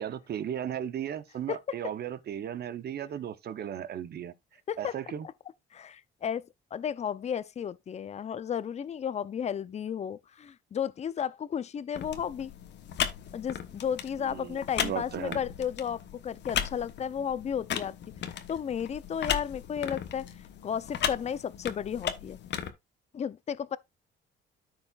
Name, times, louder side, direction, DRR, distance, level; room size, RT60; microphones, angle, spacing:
voice 1, 0.0-4.3 4.8-5.3 14.2-15.4, right 9 dB, 50° right, 0.9 m, -36 dB
voice 2, 5.7-12.5 13.3-18.0 18.2-22.4 23.1-23.8, left 8 dB, 35° left, 0.5 m, -33 dB
sound 1, 11.9-22.7, left 9 dB, 60° left, 1.1 m, -36 dB
13.5 x 4.6 x 2.4 m
cardioid pair, 110°, 20 cm